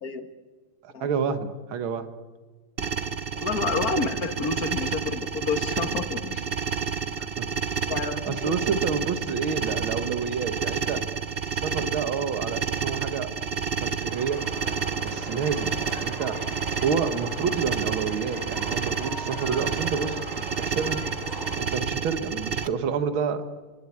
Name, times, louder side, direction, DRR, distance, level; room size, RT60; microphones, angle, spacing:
voice 1, 0.0-0.3 0.9-1.1 3.3-6.5 7.9-8.5, left 5 dB, 45° left, 7 dB, 2.0 m, -29 dB
voice 2, 0.8-2.1 7.4-7.5 8.1-11.0 11.5-13.3 13.8-14.4 15.0-16.4 16.8-21.0 21.6-23.4, right 6 dB, 70° right, 9 dB, 2.1 m, -29 dB
sound 1, 2.8-22.7, right 6 dB, 55° right, 0.6 m, -30 dB
sound 2, 14.1-21.6, equal, 10° left, 5.5 m, -39 dB
29.5 x 21.0 x 8.6 m, 1.4 s
omnidirectional pair, 2.4 m